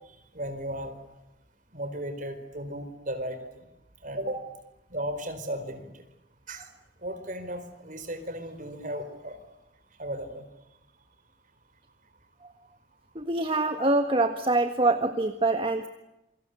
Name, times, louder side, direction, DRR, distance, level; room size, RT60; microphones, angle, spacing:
voice 1, 0.3-0.9 1.7-3.6 4.0-4.4 4.9-6.0 6.5-6.7 7.0-9.4 10.0-10.4, right 1 dB, 45° right, 9 dB, 4.4 m, -35 dB
voice 2, 13.1-15.9, right 2 dB, 30° right, 6 dB, 1.6 m, -25 dB
28.5 x 24.5 x 8.2 m, 0.93 s
head